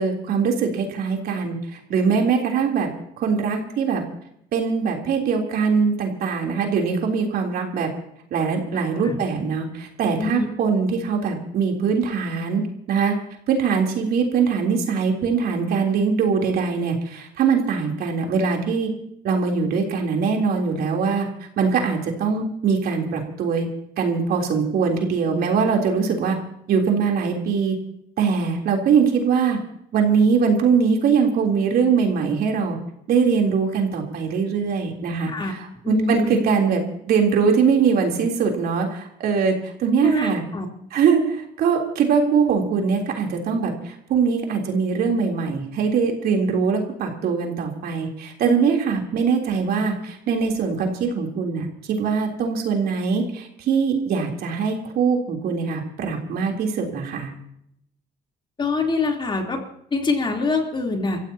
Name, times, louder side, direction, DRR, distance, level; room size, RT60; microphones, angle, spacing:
voice 1, 0.0-2.9 3.2-4.0 4.5-7.9 8.3-12.6 12.9-13.2 13.5-18.9 19.2-21.3 21.6-23.7 24.0-26.4 26.7-27.7 28.2-29.6 29.9-32.8 33.1-40.4 40.9-57.3, right 5 dB, 65° right, 1 dB, 3.4 m, -22 dB
voice 2, 35.8-36.7 40.0-40.7 58.6-59.6 59.9-61.2, left 3 dB, 30° left, 1 dB, 3.4 m, -25 dB
28.5 x 15.5 x 2.9 m, 0.73 s
cardioid pair, 110°, 17 cm